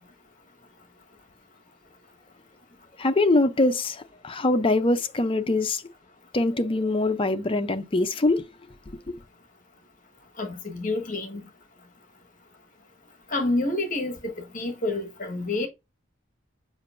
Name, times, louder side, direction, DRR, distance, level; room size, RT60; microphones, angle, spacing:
voice 1, 3.0-5.8 6.3-8.4 9.1-9.2, left 2 dB, 25° left, 0.5 m, -23 dB
voice 2, 10.4-11.4 13.3-15.7, left 2 dB, 40° left, 1.5 m, -28 dB
7.1 x 5.1 x 2.6 m
head